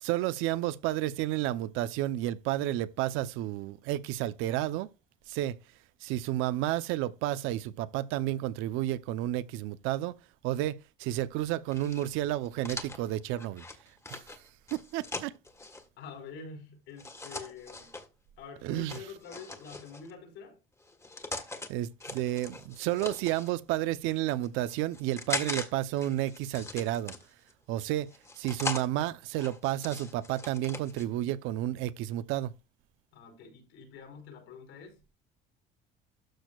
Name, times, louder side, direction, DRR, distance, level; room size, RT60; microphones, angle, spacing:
voice 1, 0.0-4.9 5.3-5.6 6.0-10.1 10.4-13.6 14.1-14.2 14.7-15.3 18.6-19.0 21.7-27.1 27.7-28.1 28.4-32.5, right 14 dB, 85° right, 0.7 m, -31 dB
sound 1, 11.7-15.8 17.0-18.1 18.9-20.1 20.8-21.7 22.0-23.5 24.2-25.7 26.0-27.5 28.1-28.9 29.3-31.0, left 2 dB, 15° left, 1.5 m, -40 dB
voice 2, 16.0-18.0 18.4-20.6 33.1-35.1, left 5 dB, 75° left, 4.8 m, -47 dB
13.0 x 6.4 x 2.4 m
cardioid pair, 120°, 20 cm